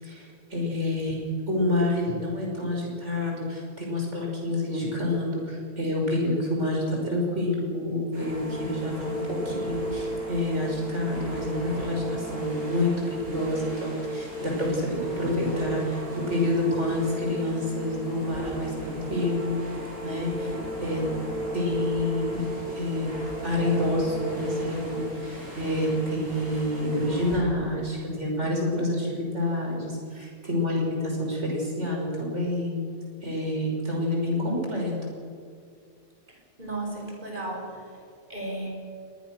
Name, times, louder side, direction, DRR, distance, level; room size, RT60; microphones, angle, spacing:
voice 1, 0.0-1.2 1.5-19.5 20.0-20.5 20.8-21.0 21.5-23.1 23.4-32.8 33.2-34.9, left 1 dB, 55° right, -1 dB, 6.3 m, -28 dB
sound 1, 8.1-27.4, right 1 dB, 80° right, 7.8 m, -35 dB
voice 2, 36.6-38.0 38.3-38.7, right 2 dB, 35° right, 0 dB, 5.5 m, -34 dB
24.0 x 20.0 x 6.6 m, 2.3 s
omnidirectional pair, 1.5 m